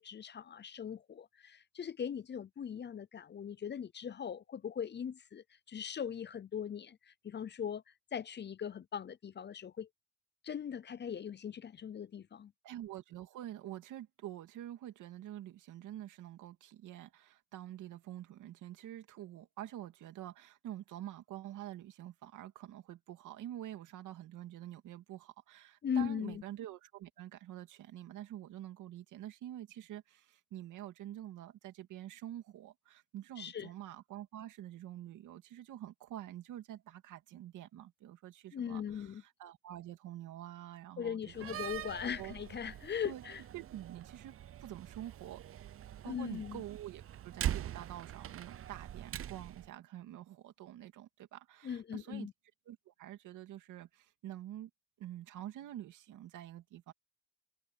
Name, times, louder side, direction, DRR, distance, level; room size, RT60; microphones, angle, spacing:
voice 1, 0.0-7.8 8.1-9.9 10.4-12.5 25.8-26.4 33.4-33.7 38.5-39.2 41.0-43.4 46.1-46.6 51.6-52.3, left 8 dB, 35° left, 0.6 m, -40 dB
voice 2, 12.6-41.6 42.2-42.3 43.0-43.2 43.5-44.3 44.6-45.4 46.0-52.3 52.7-54.7 55.0-56.9, right 12 dB, 85° right, 2.6 m, -47 dB
Slam, 41.3-49.7, right 11 dB, 45° right, 0.6 m, -43 dB
cardioid pair, 90°, 30 cm